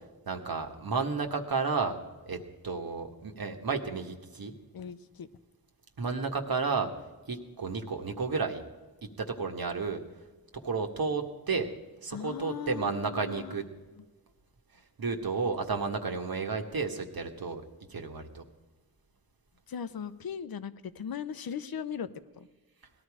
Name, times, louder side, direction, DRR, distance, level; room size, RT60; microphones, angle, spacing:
voice 1, 0.3-2.0 2.2-2.4 2.6-4.5 6.0-6.9 7.3-8.6 9.2-10.0 10.5-11.7 12.0-13.6 15.0-17.6 17.9-18.4, right 4 dB, 65° right, 4 dB, 1.6 m, -32 dB
voice 2, 4.7-5.3 12.1-13.6 19.7-22.1 22.4-22.5, left 7 dB, 70° left, 13 dB, 0.8 m, -38 dB
18.0 x 12.0 x 4.9 m, 1.2 s
cardioid pair, 40°, 38 cm